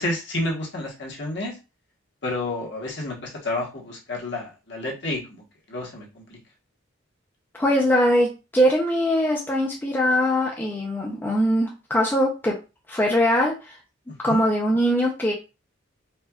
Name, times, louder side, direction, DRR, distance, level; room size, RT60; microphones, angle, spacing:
voice 1, 0.0-1.5 2.2-5.4 5.7-6.4 14.1-14.4, left 2 dB, 55° left, -2 dB, 1.0 m, -30 dB
voice 2, 7.6-8.3 8.5-12.5 12.9-13.8 14.2-15.3, equal, 10° left, -2 dB, 0.4 m, -21 dB
4.2 x 2.2 x 2.3 m, 0.30 s
head